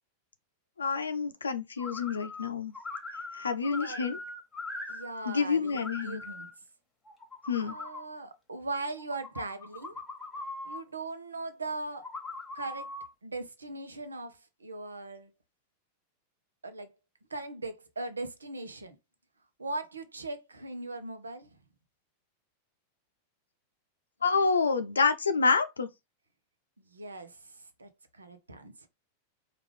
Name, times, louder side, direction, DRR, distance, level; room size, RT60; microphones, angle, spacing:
voice 1, 0.8-2.7 3.3-4.2 5.2-6.2 7.5-7.7 24.2-25.9, left 5 dB, 75° left, 0.6 m, -28 dB
sound 1, 1.8-2.5 2.7-5.4 5.6-6.5 7.1-8.0 9.0-10.8 11.9-13.1, left 2 dB, 10° left, 1.2 m, -41 dB
voice 2, 3.8-4.2 4.9-6.5 7.6-10.0 10.6-12.1 12.5-12.9 13.2-15.3 16.6-16.9 17.3-19.0 19.6-21.5 26.8-28.9, right 2 dB, 75° right, 0.8 m, -39 dB
4.7 x 2.5 x 3.3 m
figure-of-eight pair, 90°, 0 cm